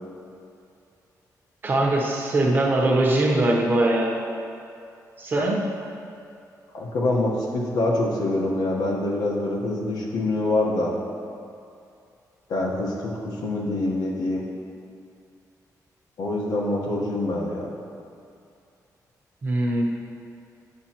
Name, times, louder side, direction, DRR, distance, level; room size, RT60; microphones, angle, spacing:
voice 1, 1.6-4.1 5.2-5.6 19.4-19.8, right 1 dB, 30° right, -2 dB, 0.9 m, -21 dB
voice 2, 6.7-10.9 12.5-14.4 16.2-17.7, left 2 dB, 70° left, -2 dB, 1.2 m, -25 dB
8.6 x 7.3 x 2.9 m, 2.5 s
wide cardioid pair, 175°, 7 cm